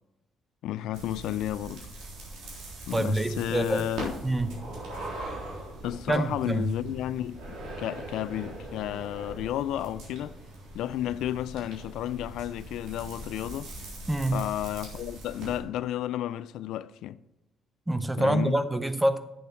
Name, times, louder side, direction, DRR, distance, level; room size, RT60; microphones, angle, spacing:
voice 1, 0.6-1.9 2.9-4.1 5.8-7.4 7.8-10.4 10.7-13.7 14.3-17.2 18.2-18.6, left 12 dB, 80° left, 0.3 m, -32 dB
sound 1, 0.9-15.6, right 2 dB, 80° right, 3.6 m, -41 dB
voice 2, 2.9-3.9 4.2-4.5 6.1-6.7 14.1-14.4 17.9-19.2, right 1 dB, 5° right, 0.6 m, -26 dB
8.3 x 6.9 x 5.6 m
cardioid pair, 170°, 0 cm